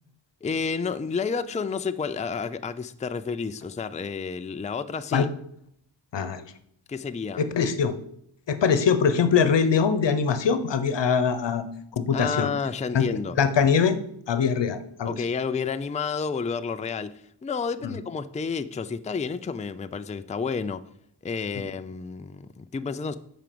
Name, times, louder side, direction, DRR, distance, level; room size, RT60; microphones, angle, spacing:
voice 1, 0.4-5.3 6.9-7.4 12.1-13.4 15.1-17.1 17.4-20.8 21.2-23.2, left 5 dB, 20° left, 11 dB, 0.4 m, -30 dB
voice 2, 6.1-6.4 7.4-7.9 8.5-11.6 12.0-12.5 12.9-13.0 13.4-14.0 14.3-15.2 17.8-18.0, left 6 dB, 80° left, 11 dB, 1.0 m, -22 dB
9.2 x 5.0 x 6.8 m, 0.70 s
wide cardioid pair, 110°, 42 cm